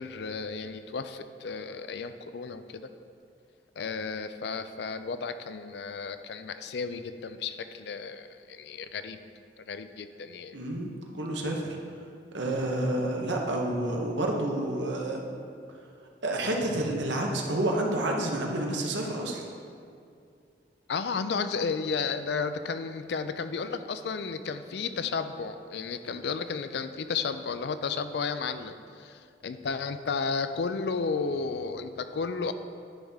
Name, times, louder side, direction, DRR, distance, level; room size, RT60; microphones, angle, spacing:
voice 1, 0.0-2.8 3.8-9.2 9.6-10.6 20.9-32.5, left 5 dB, 65° left, 10 dB, 0.4 m, -33 dB
voice 2, 10.5-11.8 12.3-15.2 16.2-19.4, right 1 dB, 85° right, 0 dB, 1.1 m, -29 dB
10.5 x 5.6 x 3.6 m, 2.4 s
head